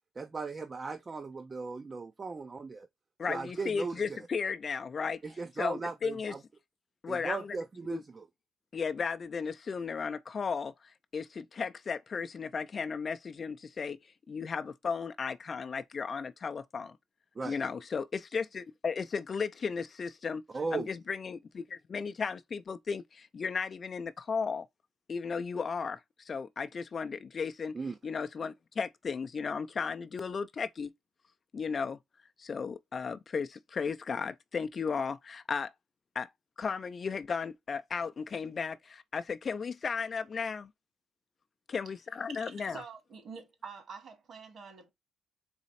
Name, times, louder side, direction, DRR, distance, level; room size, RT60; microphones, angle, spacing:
voice 1, 0.2-2.9 3.3-4.2 5.2-6.4 7.1-8.2 17.4-17.6 20.5-20.9 27.7-27.9, right 4 dB, 30° right, 0.5 m, -37 dB
voice 2, 3.2-5.2 5.6-6.3 7.0-7.6 7.9-8.0 8.7-14.0 14.3-17.0 17.4-20.4 20.7-24.7 25.1-27.8 28.0-30.9 31.5-32.0 32.4-35.7 36.1-36.3 36.6-40.7 41.7-42.8, left 5 dB, 40° left, 0.5 m, -35 dB
voice 3, 42.4-44.9, right 5 dB, 60° right, 1.9 m, -47 dB
4.1 x 3.1 x 4.1 m
cardioid pair, 90°, 0 cm